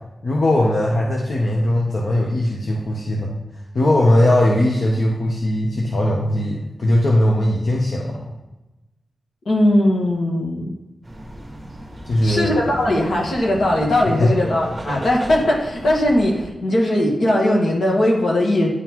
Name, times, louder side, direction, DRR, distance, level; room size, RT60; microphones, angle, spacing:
voice 1, 0.2-3.3 3.7-8.3 12.1-12.6 14.2-14.3, left 1 dB, 45° left, -2 dB, 0.8 m, -19 dB
voice 2, 9.4-10.7 12.2-18.7, left 1 dB, 65° left, -2 dB, 1.6 m, -19 dB
sound 1, 11.0-16.5, equal, 15° right, 1.2 m, -35 dB
9.5 x 3.8 x 3.0 m, 1.0 s
wide cardioid pair, 165°, 0 cm